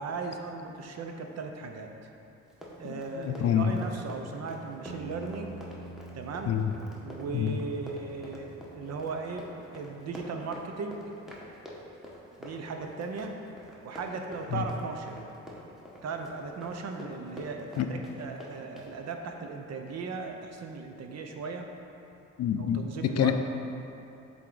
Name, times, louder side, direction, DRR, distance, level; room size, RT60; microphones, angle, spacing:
voice 1, 0.0-1.9 2.8-5.6 6.1-6.6 7.0-9.5 9.7-11.1 12.4-13.4 13.8-15.3 16.0-21.7 22.6-23.3, right 4 dB, 60° right, 4 dB, 0.7 m, -37 dB
Run, 2.5-18.9, equal, ahead, 1.1 m, -46 dB
voice 2, 2.8-3.8 6.5-6.7 7.3-7.6 14.5-14.6 17.8-17.9 22.4-23.3, left 9 dB, 55° left, 7 dB, 0.4 m, -27 dB
sound 1, 4.9-9.5, right 2 dB, 30° right, 1.1 m, -47 dB
7.5 x 3.7 x 3.9 m, 2.8 s
cardioid pair, 90°, 30 cm